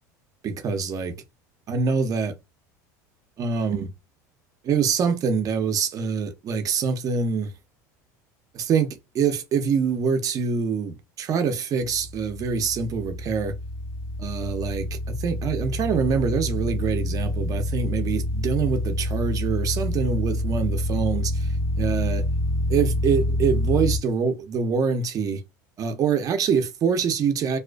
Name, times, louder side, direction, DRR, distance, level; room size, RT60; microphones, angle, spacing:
voice 1, 0.4-1.2 1.7-2.4 3.4-3.9 4.6-7.5 8.5-13.5 14.2-21.5 21.8-22.2 22.7-25.4 25.8-27.6, right 6 dB, 40° right, 0.6 m, -25 dB
sound 1, 11.8-24.0, left 1 dB, 10° left, 0.6 m, -27 dB
2.4 x 2.3 x 2.3 m
supercardioid pair, 105°, 9 cm